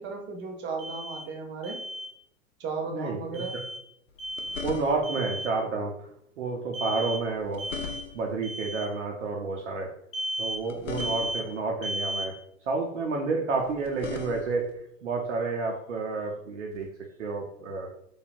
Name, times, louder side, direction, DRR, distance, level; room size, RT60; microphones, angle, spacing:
voice 1, 0.0-1.8 2.6-3.6, right 4 dB, 30° right, 3 dB, 0.6 m, -35 dB
Alarm, 0.8-1.2 1.6-2.1 3.3-3.8 4.2-4.7 5.0-5.5 6.7-7.2 7.6-8.1 8.4-8.9 10.1-10.6 11.0-11.5 11.8-12.3, right 1 dB, 15° left, 0.5 m, -34 dB
voice 2, 2.9-3.4 4.6-6.1 6.4-7.7 8.1-9.9 10.4-12.4 12.7-16.9 17.2-17.9, right 3 dB, 70° right, 0 dB, 0.6 m, -30 dB
sound 1, 4.1-5.3 7.2-8.4 10.4-11.6 13.6-14.7 16.7-16.9, left 5 dB, 75° left, 0.6 m, -40 dB
3.2 x 2.2 x 2.5 m, 0.75 s
figure-of-eight pair, 90°, 38 cm